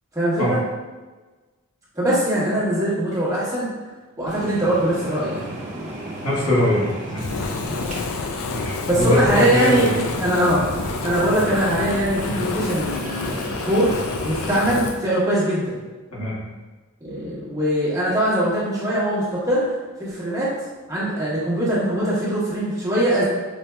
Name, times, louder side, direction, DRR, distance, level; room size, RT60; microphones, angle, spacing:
voice 1, 0.1-0.6 1.9-3.7 4.2-5.5 7.7-7.8 8.9-9.9 10.2-10.7 11.0-14.0 14.2-15.8 17.0-19.7 20.0-20.5 20.9-23.2, right 1 dB, 15° right, -9 dB, 1.1 m, -22 dB
sound 1, 4.3-14.6, right 1 dB, 35° right, 0.8 m, -35 dB
voice 2, 6.2-7.2 8.5-10.0 12.3-12.4 16.1-16.3, left 1 dB, 85° left, -7 dB, 1.5 m, -22 dB
Fire, 7.2-15.0, left 4 dB, 65° left, 0.4 m, -29 dB
5.1 x 2.7 x 2.2 m, 1.3 s
head